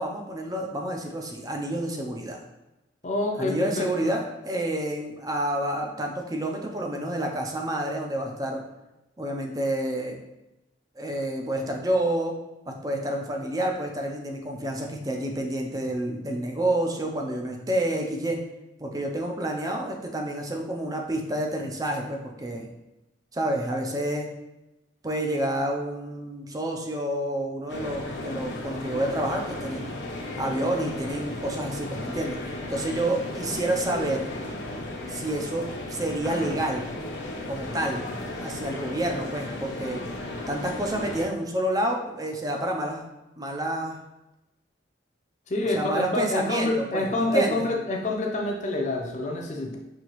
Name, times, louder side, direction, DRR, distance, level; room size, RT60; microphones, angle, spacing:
voice 1, 0.0-2.4 3.4-8.6 9.2-10.2 11.0-12.4 12.7-18.4 18.8-22.7 23.3-24.3 25.0-30.0 30.4-32.4 32.7-34.3 35.1-36.9 37.5-38.0 38.4-40.0 40.5-43.0 43.4-44.0 45.7-47.7, right 1 dB, 20° right, 2 dB, 0.5 m, -29 dB
voice 2, 3.0-4.1 45.5-49.8, left 2 dB, 40° left, 0 dB, 0.5 m, -27 dB
sound 1, 27.7-41.3, left 1 dB, 75° left, 0.8 m, -35 dB
5.5 x 2.8 x 3.0 m, 0.95 s
head